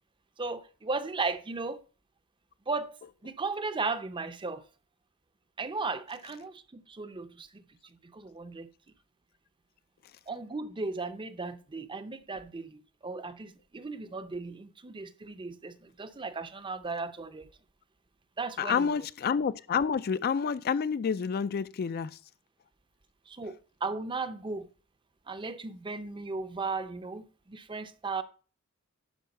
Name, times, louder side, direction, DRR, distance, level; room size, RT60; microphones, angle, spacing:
voice 1, 0.4-1.8 2.7-2.9 3.2-4.6 5.6-7.6 8.0-8.7 10.3-17.5 18.4-19.0 23.3-24.7 25.3-28.2, right 3 dB, 25° right, 0.6 m, -36 dB
voice 2, 18.6-22.2, left 6 dB, 45° left, 0.4 m, -29 dB
11.5 x 4.6 x 5.3 m
head